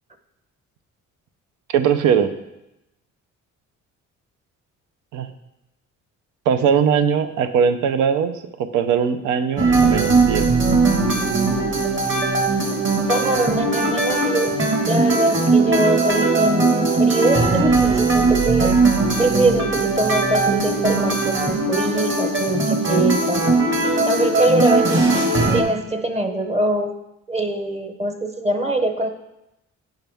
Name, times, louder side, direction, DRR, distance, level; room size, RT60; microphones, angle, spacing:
voice 1, 1.7-2.3 5.1-5.3 6.5-10.5 24.4-24.5, right 7 dB, 85° right, 10 dB, 0.7 m, -20 dB
sound 1, 9.6-25.6, right 3 dB, 40° right, 1.6 m, -19 dB
voice 2, 13.1-14.6 14.8-18.8 19.2-23.5 24.1-27.0 27.3-29.1, right 2 dB, 20° right, 6 dB, 0.8 m, -23 dB
9.2 x 5.6 x 3.5 m, 0.90 s
cardioid pair, 90°, 30 cm